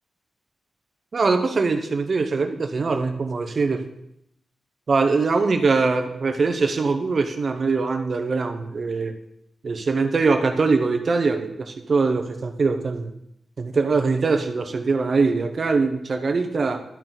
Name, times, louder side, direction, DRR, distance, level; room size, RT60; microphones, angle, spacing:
voice 1, 1.1-3.9 4.9-9.1 9.6-13.1 13.6-16.8, right 4 dB, 45° right, 6 dB, 1.0 m, -22 dB
12.0 x 8.9 x 4.1 m, 0.76 s
wide cardioid pair, 130°, 0 cm